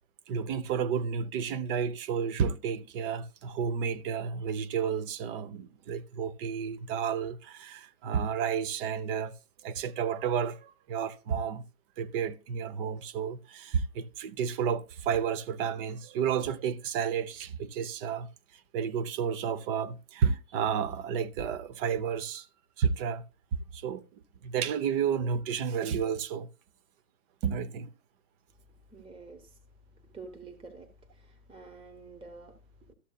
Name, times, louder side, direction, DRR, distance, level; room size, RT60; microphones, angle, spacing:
voice 1, 0.3-9.3 9.6-11.6 12.0-18.3 18.7-22.5 22.8-23.2 23.7-24.0 24.4-26.5 27.4-27.9, right 7 dB, 40° right, 0.8 m, -31 dB
voice 2, 28.9-29.6 30.0-32.9, right 3 dB, 10° right, 1.1 m, -49 dB
13.0 x 7.0 x 2.4 m
hypercardioid pair, 110°, 43 cm